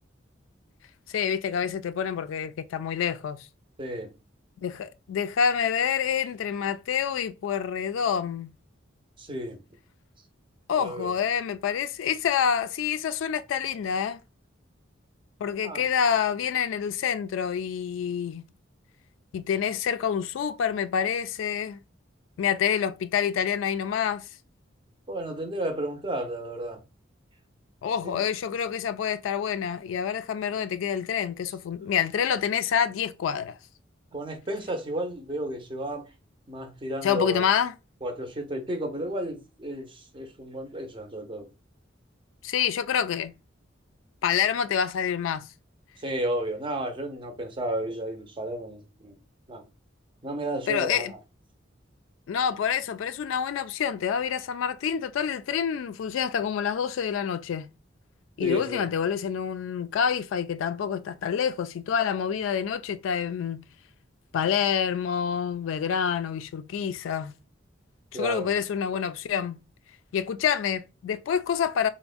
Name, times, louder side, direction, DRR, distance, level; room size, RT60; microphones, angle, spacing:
voice 1, 1.1-3.5 4.6-8.5 10.7-14.2 15.4-18.4 19.3-21.8 22.4-24.2 27.8-33.6 37.0-37.7 42.4-43.3 44.2-45.5 50.7-51.1 52.3-57.7 58.4-63.6 64.3-67.3 68.1-69.6 70.1-71.9, left 7 dB, 80° left, 0.3 m, -27 dB
voice 2, 3.8-4.1 9.2-9.6 10.8-11.1 15.6-15.8 25.1-26.8 28.0-28.2 34.1-36.1 36.5-37.5 38.0-41.5 46.0-49.2 49.5-49.7 50.2-51.2 58.4-58.9 68.1-68.5, right 1 dB, 25° right, 0.5 m, -33 dB
3.4 x 2.1 x 2.3 m
head